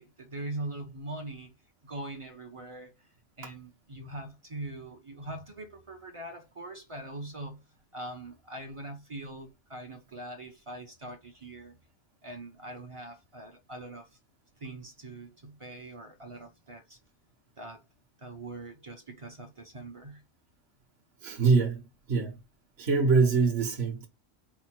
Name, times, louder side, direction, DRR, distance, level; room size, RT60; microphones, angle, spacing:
voice 1, 0.0-2.9 3.4-7.6 7.9-11.8 12.2-14.1 14.6-17.0 17.6-17.8 18.2-20.2, right 2 dB, 35° right, 0.5 m, -42 dB
voice 2, 21.2-21.8 22.1-22.4 22.8-24.1, right 4 dB, 55° right, 1.2 m, -24 dB
4.8 x 2.1 x 4.4 m
omnidirectional pair, 1.4 m